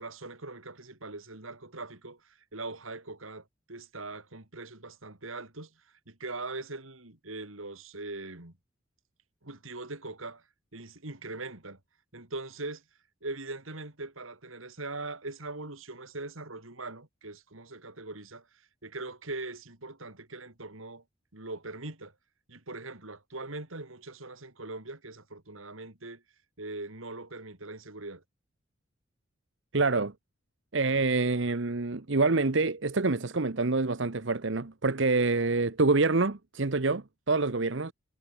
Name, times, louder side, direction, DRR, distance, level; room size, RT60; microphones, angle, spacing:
voice 1, 0.0-8.5 9.4-10.4 10.7-11.8 12.1-12.8 13.2-21.0 21.3-22.1 22.5-26.2 26.6-28.2, right 2 dB, 80° right, 3.7 m, -41 dB
voice 2, 29.7-30.1 30.7-37.9, right 3 dB, 65° right, 1.0 m, -26 dB
head